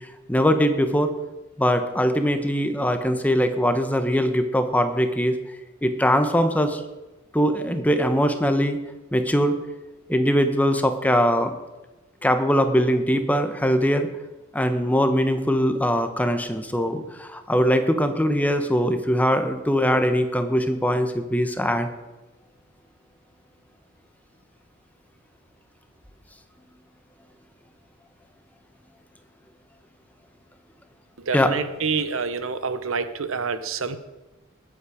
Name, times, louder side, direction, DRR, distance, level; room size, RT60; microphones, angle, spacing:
voice 1, 0.3-1.1 1.6-5.3 5.8-6.8 7.3-8.8 9.1-9.5 10.1-11.5 12.2-14.1 14.5-21.9 31.3-31.5, equal, 10° left, 7 dB, 1.0 m, -21 dB
voice 2, 31.3-34.0, right 5 dB, 75° right, 11 dB, 0.9 m, -27 dB
20.5 x 8.6 x 5.0 m, 1.1 s
head